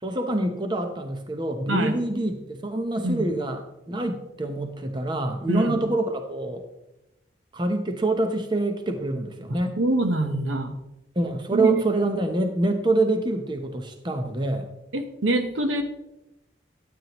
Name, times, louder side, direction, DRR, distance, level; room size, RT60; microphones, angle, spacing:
voice 1, 0.0-3.6 3.9-6.6 7.5-9.8 11.2-14.7, right 2 dB, 25° right, 5 dB, 0.8 m, -26 dB
voice 2, 5.5-5.8 9.8-10.7 11.5-11.8 14.9-15.8, right 1 dB, 85° right, 7 dB, 1.0 m, -25 dB
12.5 x 9.0 x 3.0 m, 0.90 s
head